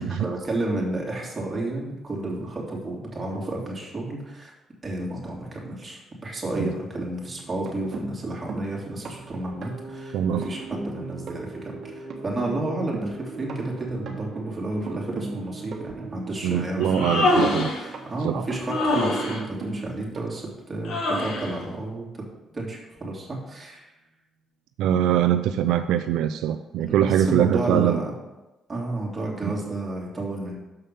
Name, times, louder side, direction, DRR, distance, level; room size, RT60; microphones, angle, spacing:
voice 1, 0.2-4.5 4.8-22.2 22.5-23.9 26.9-28.1 28.7-30.6, right 2 dB, 25° right, -3 dB, 2.9 m, -31 dB
sound 1, 7.3-21.2 22.5-22.6 22.9-23.1, right 3 dB, 55° right, 1.4 m, -38 dB
voice 2, 10.1-10.5 16.4-17.7 18.2-18.5 24.8-28.0 29.4-29.5, right 10 dB, 85° right, 9 dB, 0.3 m, -23 dB
Human voice, 16.8-17.9 18.7-19.4 20.8-21.5, left 1 dB, 70° left, 1.9 m, -24 dB
6.8 x 5.5 x 6.8 m, 1.0 s
cardioid pair, 85°, 0 cm